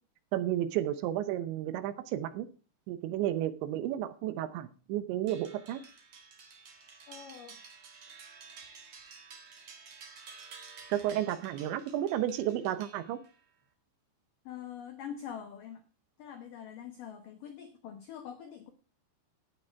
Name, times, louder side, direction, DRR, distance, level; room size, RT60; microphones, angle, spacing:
voice 1, 0.3-2.5 2.9-5.8 10.9-13.2, right 12 dB, 80° right, 12 dB, 3.0 m, -32 dB
sound 1, 5.3-13.4, right 5 dB, 50° right, 1.8 m, -52 dB
voice 2, 7.1-7.6 14.5-15.8 16.2-18.7, left 8 dB, 85° left, 6 dB, 1.9 m, -44 dB
11.5 x 9.7 x 4.6 m, 0.37 s
omnidirectional pair, 5.6 m